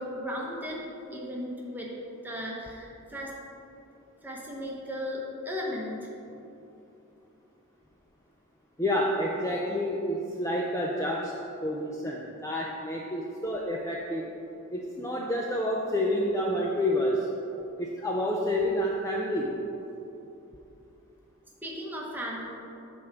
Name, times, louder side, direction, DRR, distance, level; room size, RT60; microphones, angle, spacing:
voice 1, 0.0-1.9 2.2-3.4 4.2-6.1 21.6-22.4, equal, 10° right, -3 dB, 1.0 m, -36 dB
voice 2, 8.8-11.4 11.6-14.2 14.7-17.3 17.8-19.6, left 1 dB, 15° left, -2 dB, 0.4 m, -29 dB
8.5 x 3.5 x 6.7 m, 2.9 s
head